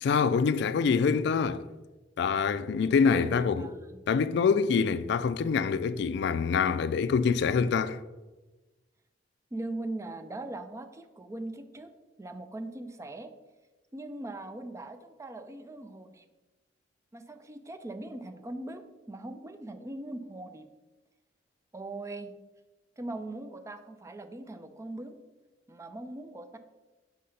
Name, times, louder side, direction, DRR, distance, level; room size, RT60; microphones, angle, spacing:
voice 1, 0.0-1.6 2.2-3.6 4.1-8.0, left 5 dB, 65° left, 0.3 m, -25 dB
voice 2, 3.1-4.0 9.5-11.9 12.2-13.3 13.9-16.3 17.1-20.7 21.7-22.3 23.0-25.2 25.7-26.6, right 2 dB, 15° right, 0.4 m, -40 dB
5.3 x 3.7 x 5.7 m
head